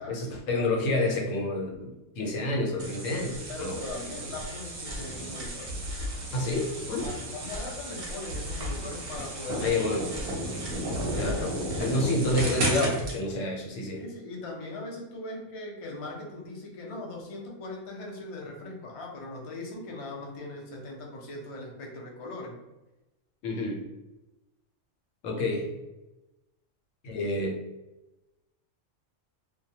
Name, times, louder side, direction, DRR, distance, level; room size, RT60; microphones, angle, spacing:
voice 1, 0.0-1.9 2.2-3.8 6.3-7.1 9.6-10.0 11.1-14.0 23.4-23.8 25.2-25.7 27.0-27.6, left 2 dB, 85° left, 1 dB, 1.0 m, -29 dB
sound 1, 2.8-13.2, right 1 dB, 55° right, 0.8 m, -34 dB
voice 2, 3.5-5.8 7.0-9.7 10.6-10.9 13.9-22.5, left 2 dB, 45° left, -1 dB, 0.4 m, -40 dB
2.2 x 2.1 x 2.7 m, 1.0 s
omnidirectional pair, 1.3 m